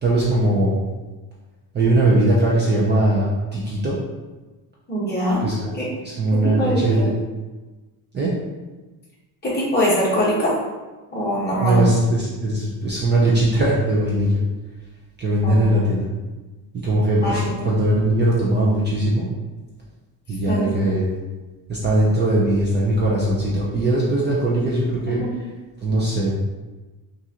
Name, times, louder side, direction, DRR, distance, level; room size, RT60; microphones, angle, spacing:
voice 1, 0.0-0.8 1.7-4.0 5.4-5.7 6.0-7.1 8.1-8.3 11.6-14.4 15.2-16.1 16.7-19.3 20.3-21.2 21.7-25.2 25.8-26.3, right 1 dB, 25° right, -5 dB, 0.6 m, -20 dB
voice 2, 4.9-5.4 5.8-5.9 6.4-7.1 9.4-10.5 11.1-11.9 15.4-15.7 17.2-17.7 20.5-20.6 25.2-25.3, equal, 25° left, -7 dB, 1.3 m, -22 dB
5.9 x 2.6 x 2.8 m, 1.2 s
cardioid pair, 170°, 40 cm